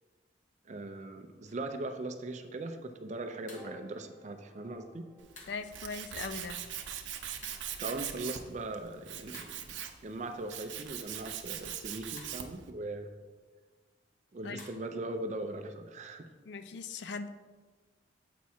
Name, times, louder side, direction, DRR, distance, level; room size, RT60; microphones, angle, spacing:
voice 1, 0.7-5.1 7.8-9.7 10.0-13.1 14.3-16.3, right 2 dB, 40° right, 7 dB, 0.4 m, -40 dB
sound 1, 1.4-1.7 3.5-3.8 5.4-5.7 7.4-7.8 9.3-9.8 12.2-12.5 14.6-14.9, left 2 dB, 45° left, 1.1 m, -52 dB
Piano, 3.5-9.9, left 1 dB, 15° left, 0.9 m, -58 dB
Tools, 5.2-12.7, right 9 dB, 90° right, 0.6 m, -41 dB
voice 2, 5.5-6.6 14.4-14.6 16.5-17.3, left 4 dB, 70° left, 10 dB, 0.4 m, -40 dB
7.4 x 4.7 x 4.2 m, 1.4 s
head